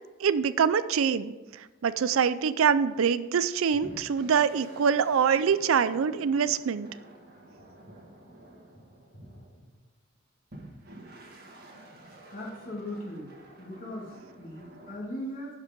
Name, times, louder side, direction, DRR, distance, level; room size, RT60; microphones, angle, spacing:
voice 1, 0.0-1.3 1.8-6.9, right 7 dB, 85° right, 15 dB, 0.4 m, -24 dB
sound 1, 3.8-9.7 10.5-15.0, right 1 dB, 50° right, 1.6 m, -50 dB
voice 2, 12.3-13.3 13.6-15.6, left 1 dB, 40° left, -4 dB, 2.5 m, -39 dB
11.5 x 5.1 x 5.3 m, 1.2 s
head